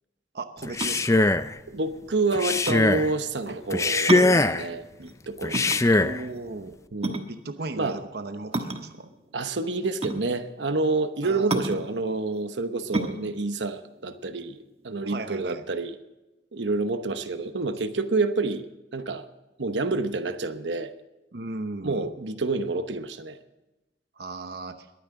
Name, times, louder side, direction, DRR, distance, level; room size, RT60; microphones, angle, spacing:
voice 1, 0.3-1.3 5.9-6.8 7.3-9.1 11.2-11.9 15.0-15.6 21.3-22.1 24.2-24.9, right 3 dB, 60° right, 8 dB, 0.9 m, -37 dB
Male speech man speaking, 0.6-1.5 2.3-3.1 3.7-4.7 5.4-6.2, left 2 dB, 15° left, 0.4 m, -21 dB
sound 1, 0.6-15.0, right 2 dB, 35° right, 1.3 m, -33 dB
voice 2, 1.7-6.0 6.9-7.2 7.8-8.0 9.3-16.0 16.5-18.6 18.9-19.3 19.6-20.9 21.8-23.4, right 3 dB, 85° right, 9 dB, 1.0 m, -28 dB
21.5 x 9.5 x 3.8 m, 1.0 s
head